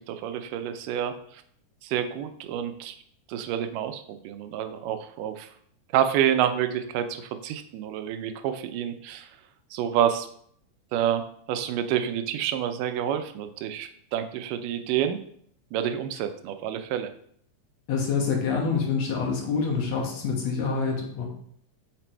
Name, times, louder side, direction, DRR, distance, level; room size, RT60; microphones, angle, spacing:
voice 1, 0.1-1.1 1.8-3.0 3.3-5.5 5.9-9.3 9.7-10.3 10.9-15.2 15.7-17.1, right 10 dB, 80° right, 9 dB, 2.1 m, -28 dB
voice 2, 17.9-21.3, left 5 dB, 60° left, 0 dB, 2.2 m, -26 dB
6.0 x 4.9 x 4.4 m, 0.65 s
omnidirectional pair, 3.8 m